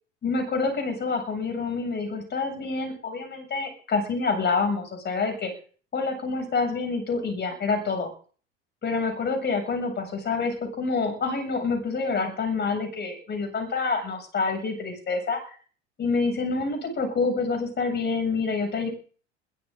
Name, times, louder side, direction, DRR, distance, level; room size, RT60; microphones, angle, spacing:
voice 1, 0.2-5.5 5.9-8.1 8.8-15.4 16.0-18.9, left 4 dB, 30° left, 4 dB, 7.3 m, -27 dB
21.5 x 15.5 x 3.9 m, 0.43 s
figure-of-eight pair, 70°, 36 cm